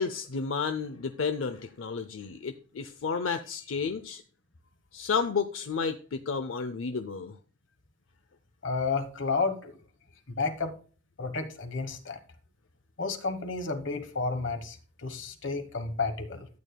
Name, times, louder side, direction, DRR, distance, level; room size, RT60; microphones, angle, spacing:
voice 1, 0.0-4.2 4.9-7.3, left 5 dB, 90° left, 9 dB, 0.6 m, -31 dB
voice 2, 8.6-9.8 10.3-10.7 11.2-12.2 13.0-16.5, left 4 dB, 70° left, 9 dB, 1.3 m, -31 dB
12.0 x 8.3 x 2.2 m, 0.39 s
head